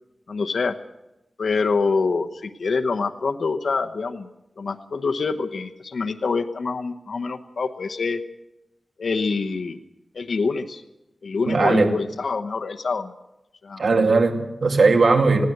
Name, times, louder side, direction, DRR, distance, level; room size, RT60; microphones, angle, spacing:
voice 1, 0.3-0.7 1.4-4.3 4.6-8.2 9.0-9.8 10.1-10.8 11.2-13.1 13.6-13.8, left 4 dB, 75° left, 6 dB, 0.9 m, -25 dB
voice 2, 11.5-11.9 13.8-15.5, right 3 dB, 75° right, 4 dB, 2.4 m, -18 dB
20.0 x 16.5 x 7.9 m, 0.94 s
wide cardioid pair, 90°, 0 cm